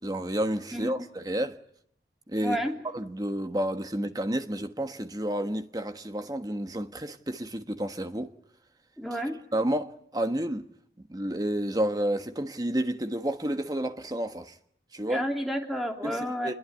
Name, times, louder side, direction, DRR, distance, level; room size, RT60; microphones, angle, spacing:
voice 1, 0.0-1.6 2.3-2.6 2.9-8.3 9.5-10.6 11.1-14.5 14.9-15.2 16.0-16.5, right 1 dB, 20° right, 1.4 m, -30 dB
voice 2, 2.4-2.7 9.0-9.4 15.1-16.5, equal, ahead, 3.0 m, -30 dB
27.0 x 22.0 x 9.5 m
head